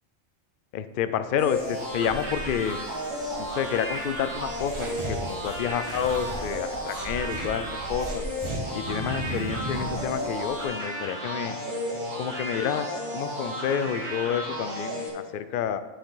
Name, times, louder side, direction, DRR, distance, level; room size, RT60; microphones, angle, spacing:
voice 1, 0.7-2.8 3.4-8.2 8.7-11.6 12.2-15.8, left 8 dB, 55° left, 11 dB, 0.6 m, -29 dB
sound 1, 1.4-15.1, equal, 85° right, 2.7 m, -33 dB
sound 2, 1.5-10.7, right 1 dB, 55° right, 2.0 m, -43 dB
sound 3, 4.7-7.5 8.0-10.1, right 1 dB, 25° right, 1.4 m, -35 dB
10.5 x 6.5 x 3.9 m, 1.4 s
omnidirectional pair, 1.3 m